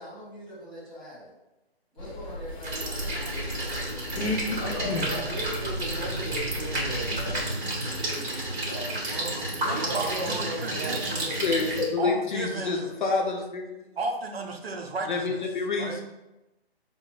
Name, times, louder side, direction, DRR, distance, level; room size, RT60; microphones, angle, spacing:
voice 1, 0.0-1.3 1.9-4.6, equal, ahead, -10 dB, 1.3 m, -45 dB
sound 1, 2.0-7.4, left 2 dB, 85° left, 0.7 m, -35 dB
voice 2, 2.0-2.3 4.5-7.4 7.8-9.1 9.6-11.4, right 1 dB, 15° right, -10 dB, 0.6 m, -37 dB
sound 2, 2.6-11.8, right 1 dB, 45° right, 1.3 m, -31 dB
voice 3, 9.1-11.4 12.0-12.9 14.0-15.4 15.8-16.0, right 3 dB, 70° right, 2 dB, 0.7 m, -34 dB
voice 4, 11.2-14.0 15.1-16.0, left 4 dB, 50° left, 1 dB, 0.6 m, -28 dB
5.8 x 2.0 x 2.4 m, 0.99 s
figure-of-eight pair, 145°, 32 cm